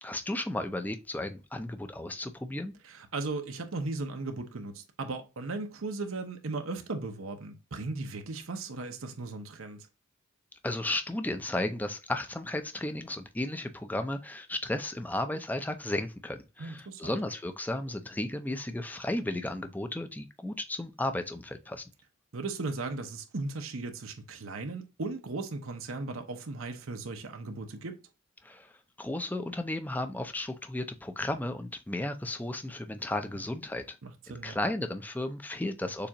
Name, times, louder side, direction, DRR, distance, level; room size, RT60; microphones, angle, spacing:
voice 1, 0.0-2.7 10.6-21.9 28.4-28.7 29.0-34.0 34.3-36.1, left 1 dB, 10° left, 0.4 m, -34 dB
voice 2, 2.9-9.9 16.6-17.2 22.3-28.0 33.4-33.5 34.0-34.6, right 3 dB, 85° right, 0.8 m, -37 dB
6.8 x 2.5 x 2.9 m
head